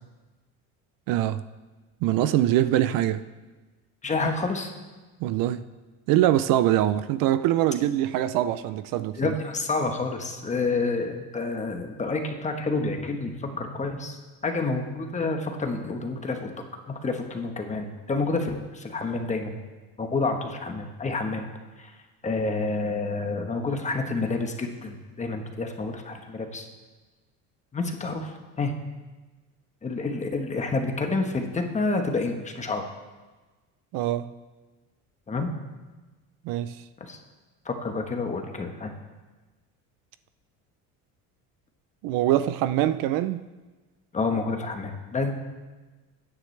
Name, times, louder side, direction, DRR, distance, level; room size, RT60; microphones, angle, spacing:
voice 1, 1.1-1.4 2.0-3.2 5.2-5.6 6.1-9.3 33.9-34.3 36.4-36.8 42.0-43.5, right 13 dB, 65° right, 13 dB, 0.5 m, -23 dB
voice 2, 4.0-4.7 9.1-14.2 14.4-16.5 16.9-19.5 20.0-21.4 21.8-21.9 22.2-26.7 27.7-28.7 29.8-32.8 35.3-35.5 37.0-37.2 37.6-38.9 44.1-45.3, left 3 dB, 20° left, 4 dB, 1.2 m, -29 dB
16.0 x 9.8 x 3.3 m, 1.2 s
cardioid pair, 130°, 36 cm